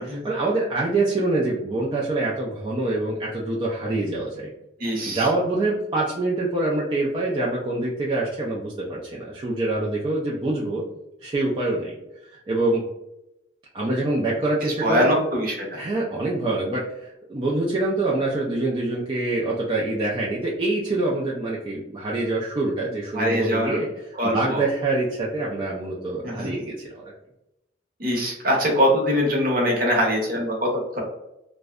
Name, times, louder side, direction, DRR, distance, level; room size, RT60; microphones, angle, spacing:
voice 1, 0.0-4.5 5.1-10.8 11.2-12.0 12.3-12.8 13.7-15.1 15.7-23.9 24.2-27.1, right 2 dB, 30° right, -5 dB, 0.3 m, -25 dB
voice 2, 4.8-5.3 14.6-15.8 23.1-23.8 24.2-24.6 26.2-26.5 28.0-31.0, equal, 50° right, -1 dB, 0.8 m, -23 dB
2.6 x 2.1 x 2.3 m, 0.87 s
head